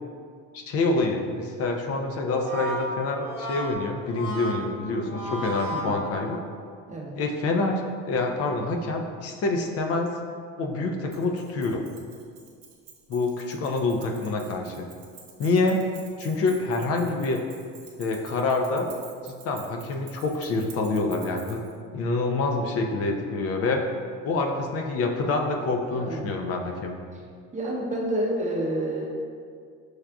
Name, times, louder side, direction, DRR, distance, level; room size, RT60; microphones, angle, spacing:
voice 1, 0.5-6.4 7.1-7.8 8.1-10.1 10.6-11.8 13.1-14.9 15.4-15.8 16.2-17.4 18.0-18.9 19.2-21.6 21.9-23.9 24.2-27.0, left 3 dB, 50° left, 3 dB, 0.5 m, -26 dB
Brass instrument, 2.1-6.7, right 1 dB, 70° left, 1.2 m, -34 dB
Keys jangling, 11.1-21.7, right 6 dB, 60° right, 0.8 m, -49 dB
voice 2, 25.9-26.3 27.5-29.1, right 1 dB, 25° right, -2 dB, 0.8 m, -29 dB
6.2 x 2.3 x 2.3 m, 2.1 s
supercardioid pair, 95°, 32 cm